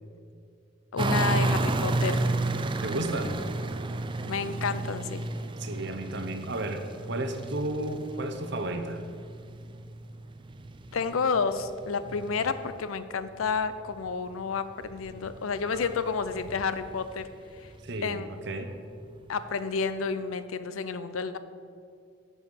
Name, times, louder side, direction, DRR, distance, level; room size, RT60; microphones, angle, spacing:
voice 1, 0.9-2.3 4.3-5.2 10.9-17.3 17.5-17.7 18.0-18.3 19.3-21.4, left 5 dB, 80° left, 12 dB, 0.5 m, -30 dB
sound 1, 1.0-12.9 13.3-18.2 18.7-18.8, right 2 dB, 25° right, 0.4 m, -32 dB
voice 2, 2.8-3.4 5.6-9.0 17.8-18.8, right 1 dB, 55° right, 7 dB, 0.9 m, -33 dB
9.1 x 5.5 x 6.4 m, 2.4 s
head